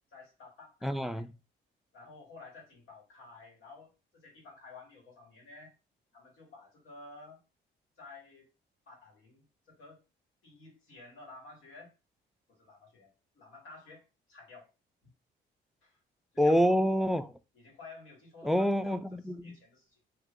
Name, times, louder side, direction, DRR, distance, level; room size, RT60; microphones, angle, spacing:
voice 1, 0.1-1.3 1.9-5.7 6.1-7.4 8.0-8.5 8.9-10.0 10.4-11.9 12.5-14.0 14.3-14.7 15.8-16.0 16.3-16.7 17.5-19.0 19.4-20.0, left 3 dB, 85° left, 1.8 m, -52 dB
voice 2, 0.8-1.3 16.4-17.3 18.4-19.5, equal, ahead, 0.3 m, -27 dB
2.8 x 2.4 x 3.5 m
cardioid pair, 90°, 20 cm